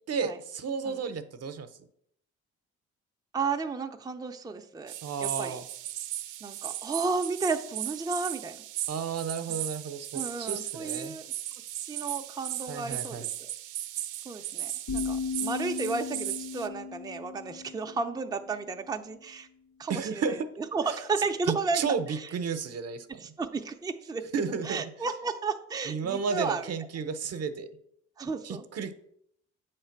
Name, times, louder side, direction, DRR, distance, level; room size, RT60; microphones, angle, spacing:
voice 1, 0.1-1.7 5.0-5.6 8.9-10.1 10.4-11.1 12.7-13.3 19.9-20.4 21.5-23.1 24.3-24.8 25.9-27.7 28.4-29.0, right 6 dB, 55° right, 10 dB, 0.8 m, -32 dB
voice 2, 3.3-4.9 5.2-5.6 6.4-8.6 10.1-11.3 11.8-13.5 14.2-19.5 19.8-20.4 20.7-21.8 22.1-22.3 23.2-24.2 24.6-26.7 28.2-28.6, right 4 dB, 15° right, 4 dB, 0.5 m, -33 dB
sound 1, 4.9-16.7, right 13 dB, 90° right, 0.5 m, -37 dB
sound 2, 14.9-18.8, left 5 dB, 65° left, 1.8 m, -36 dB
7.8 x 3.3 x 5.8 m, 0.71 s
cardioid pair, 90°, 30 cm